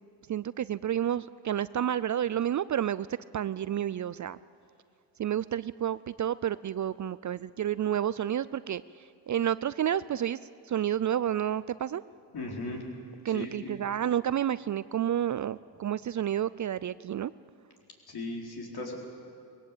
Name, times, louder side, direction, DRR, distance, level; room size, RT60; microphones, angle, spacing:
voice 1, 0.3-3.1 3.3-4.4 5.2-8.8 9.3-10.4 10.7-12.0 13.2-17.3, right 10 dB, 40° right, 17 dB, 0.4 m, -30 dB
voice 2, 12.3-12.8 13.3-13.8 18.1-18.9, left 2 dB, 55° left, 0 dB, 4.3 m, -37 dB
20.0 x 17.0 x 8.4 m, 2.4 s
cardioid pair, 70°, 45 cm